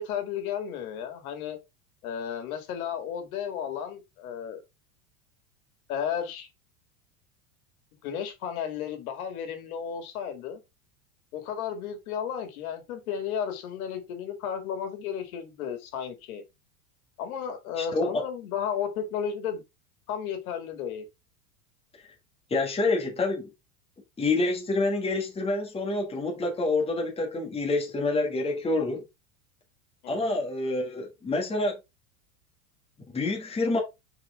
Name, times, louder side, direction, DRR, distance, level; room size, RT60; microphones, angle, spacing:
voice 1, 0.0-1.6 2.0-4.6 5.9-6.5 8.0-10.6 11.3-16.4 17.2-19.6 20.1-21.0 30.0-30.4, left 8 dB, 80° left, 2.0 m, -33 dB
voice 2, 17.8-18.2 22.5-23.5 24.2-29.0 30.1-31.8 33.1-33.8, left 2 dB, 15° left, 1.6 m, -27 dB
6.0 x 4.4 x 3.6 m
supercardioid pair, 145°, 42 cm